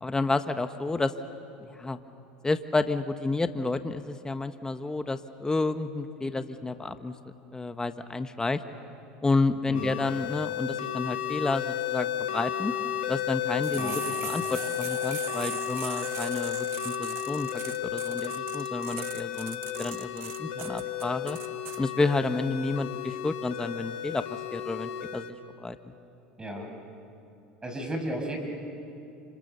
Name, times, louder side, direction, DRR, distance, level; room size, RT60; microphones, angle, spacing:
voice 1, 0.0-1.1 1.6-2.0 2.4-7.1 7.5-8.6 9.2-12.7 13.1-21.4 21.8-25.9, left 3 dB, 15° left, 9 dB, 1.2 m, -30 dB
sound 1, 9.7-25.3, left 10 dB, 75° left, 2.2 m, -33 dB
sound 2, 13.6-21.8, right 13 dB, 55° right, 1.6 m, -40 dB
voice 2, 27.6-28.4, right 1 dB, 15° right, 3 dB, 6.6 m, -34 dB
29.5 x 27.0 x 6.9 m, 2.7 s
hypercardioid pair, 85°, 5 cm